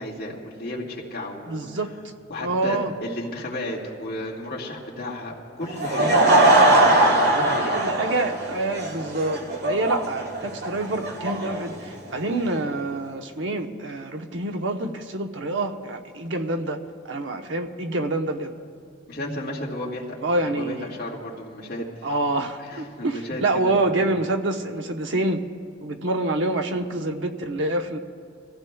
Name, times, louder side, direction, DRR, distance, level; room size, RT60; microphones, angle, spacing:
voice 1, 0.0-1.7 2.3-6.2 7.0-7.8 19.1-22.1 22.6-24.1, left 1 dB, 55° left, -4 dB, 2.1 m, -33 dB
voice 2, 1.5-1.9 2.4-2.9 7.7-16.8 17.1-18.5 20.2-20.9 22.0-25.4 25.8-28.0, right 2 dB, 80° right, 4 dB, 0.9 m, -26 dB
Laughter / Crowd, 5.6-12.5, right 1 dB, 60° right, 1.6 m, -21 dB
24.5 x 15.0 x 2.3 m, 2.2 s
head